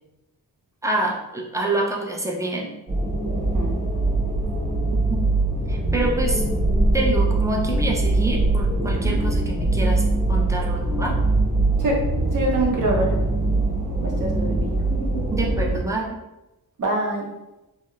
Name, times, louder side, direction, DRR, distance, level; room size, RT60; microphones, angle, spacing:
voice 1, 0.8-2.7 4.9-5.3 5.7-6.4 6.9-11.2 15.3-16.2, right 2 dB, 10° right, -1 dB, 0.3 m, -27 dB
sound 1, 2.9-15.8, right 2 dB, 25° right, 0.8 m, -22 dB
voice 2, 3.3-3.8 11.8-12.0 12.3-13.2 14.0-14.7 16.8-17.3, right 2 dB, 55° right, -1 dB, 0.6 m, -25 dB
2.8 x 2.0 x 2.2 m, 0.97 s
wide cardioid pair, 110°, 36 cm